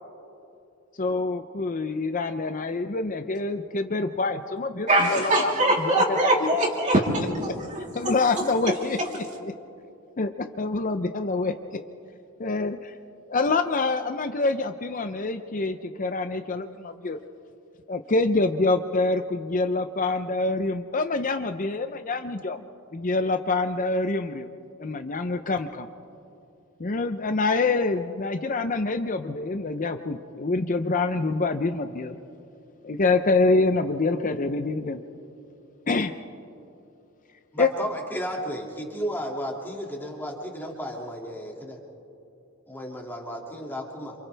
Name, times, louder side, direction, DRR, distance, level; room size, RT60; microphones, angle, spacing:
voice 1, 1.0-6.0 6.4-6.5 7.9-9.5 10.2-11.8 12.4-12.9 13.3-17.2 17.9-22.6 22.9-24.5 24.8-25.9 26.8-32.2 32.8-35.0 35.9-36.1 37.6-37.7, left 3 dB, 40° left, 8 dB, 0.6 m, -26 dB
voice 2, 4.9-7.2 7.6-8.1, right 1 dB, 35° right, -2 dB, 3.4 m, -22 dB
voice 3, 37.5-41.8 42.7-44.2, equal, 10° left, -1 dB, 2.4 m, -33 dB
28.5 x 27.5 x 3.4 m, 2.7 s
head